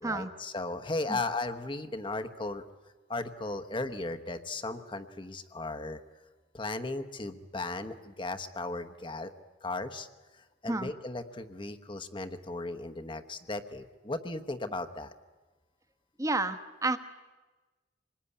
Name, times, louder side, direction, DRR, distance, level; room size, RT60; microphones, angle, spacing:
voice 1, 0.0-2.6 3.1-6.0 6.5-9.3 9.6-10.1 10.3-15.1, left 2 dB, 25° left, 9 dB, 1.1 m, -36 dB
voice 2, 16.2-17.0, right 2 dB, 20° right, 10 dB, 1.2 m, -30 dB
25.5 x 20.5 x 9.9 m, 1.3 s
head